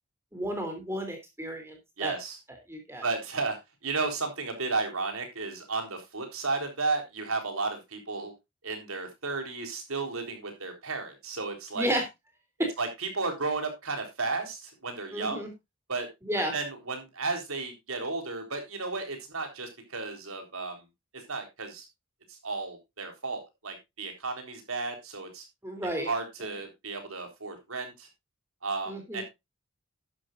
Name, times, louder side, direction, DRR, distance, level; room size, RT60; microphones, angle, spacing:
voice 1, 0.3-2.1 2.7-3.0 11.7-12.0 12.6-12.7 15.1-15.5 16.2-16.5 25.6-26.1 28.9-29.2, right 1 dB, 10° right, 4 dB, 3.2 m, -32 dB
voice 2, 2.0-2.4 3.0-8.3 8.6-11.9 12.8-15.5 15.9-16.1 16.5-20.8 21.3-21.9 22.3-25.4 26.0-28.1 28.6-29.2, right 3 dB, 80° right, 4 dB, 3.9 m, -33 dB
12.0 x 11.0 x 2.6 m, 0.22 s
head